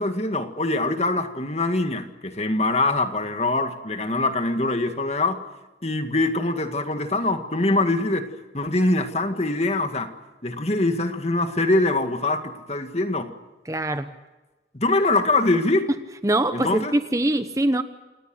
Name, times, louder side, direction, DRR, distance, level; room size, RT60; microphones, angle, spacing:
voice 1, 0.0-5.4 5.8-10.1 10.4-13.3 14.7-15.9 16.5-16.9, left 2 dB, 35° left, 7 dB, 2.0 m, -23 dB
voice 2, 13.7-14.1 16.2-17.8, right 1 dB, 20° right, 10 dB, 0.9 m, -23 dB
28.0 x 19.0 x 7.9 m, 1.1 s
head